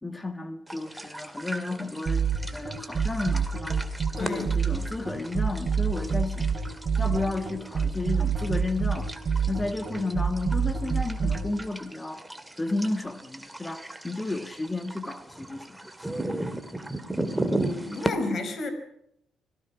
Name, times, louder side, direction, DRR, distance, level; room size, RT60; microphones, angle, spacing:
voice 1, 0.0-3.8 4.2-6.5 7.0-9.1 9.5-12.2 12.6-15.8, left 2 dB, 15° left, 1.8 m, -32 dB
sound 1, 0.7-18.1, right 1 dB, 10° right, 2.3 m, -37 dB
sound 2, 2.1-11.5, right 6 dB, 40° right, 4.7 m, -26 dB
voice 2, 4.2-4.5 17.3-18.7, left 2 dB, 50° left, 5.4 m, -32 dB
25.0 x 17.5 x 6.0 m
cardioid pair, 90°, 0 cm